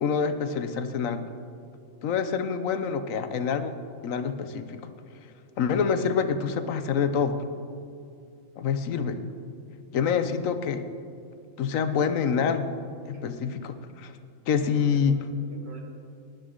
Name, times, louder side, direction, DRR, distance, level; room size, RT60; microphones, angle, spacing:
voice 1, 0.0-1.3 2.0-3.8 4.0-4.9 5.6-7.4 8.6-9.2 9.9-10.8 11.6-12.8 13.1-14.2 14.5-15.2, left 6 dB, 85° left, 9 dB, 1.2 m, -26 dB
voice 2, 5.5-5.9 13.1-13.3 14.5-15.8, equal, 55° right, 0 dB, 1.9 m, -49 dB
19.0 x 10.5 x 3.8 m, 2.5 s
omnidirectional pair, 1.3 m